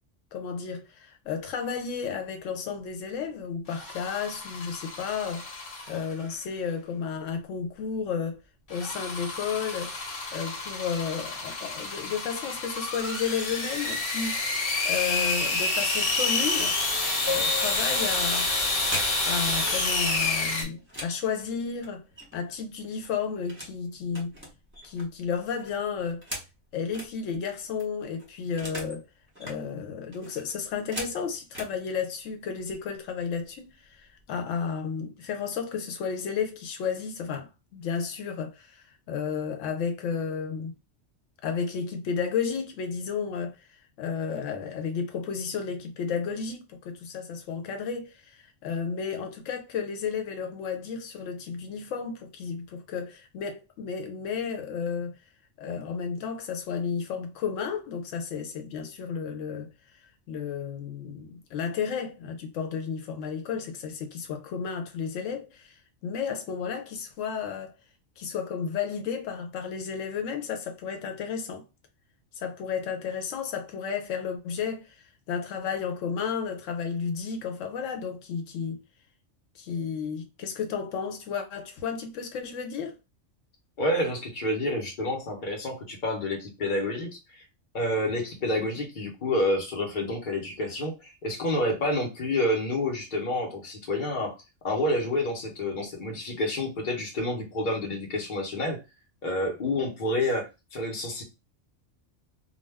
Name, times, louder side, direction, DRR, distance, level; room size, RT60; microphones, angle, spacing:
voice 1, 0.3-8.4 8.7-10.0 10.3-14.4 14.8-16.8 17.3-18.5 19.3-22.1 22.3-24.3 24.8-26.2 26.7-29.0 29.4-40.7 41.4-43.6 44.0-55.2 55.6-59.7 60.3-67.7 68.2-71.6 72.4-78.8 79.6-83.0, left 6 dB, 90° left, 1.0 m, -32 dB
sound 1, 3.7-6.2 8.7-20.6, left 2 dB, 60° left, 1.3 m, -29 dB
Piano, 17.3-20.3, left 4 dB, 20° left, 0.5 m, -38 dB
sound 2, 18.9-19.8 20.2-22.5 22.8-23.8 24.1-27.1 27.5-27.6 27.8-29.0 29.3-29.6 30.1-31.7 32.6-32.7 33.1-33.4 33.7-34.2, equal, 10° right, 0.9 m, -41 dB
voice 2, 83.8-87.4 87.7-94.4 94.6-98.8 99.2-101.2, left 1 dB, 45° left, 1.0 m, -29 dB
2.4 x 2.2 x 3.3 m
omnidirectional pair, 1.3 m